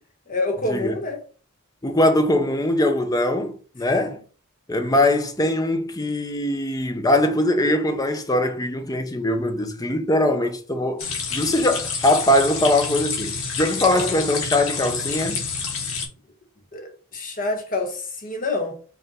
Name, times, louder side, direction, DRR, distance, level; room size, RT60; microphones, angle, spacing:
voice 1, 0.3-1.2 3.9-4.0 13.9-14.1 16.7-18.8, left 2 dB, 40° left, 1.2 m, -27 dB
voice 2, 1.8-4.2 4.7-15.4, left 1 dB, 15° left, 0.6 m, -21 dB
sound 1, 11.0-16.0, left 5 dB, 70° left, 1.5 m, -28 dB
5.3 x 2.4 x 4.0 m
head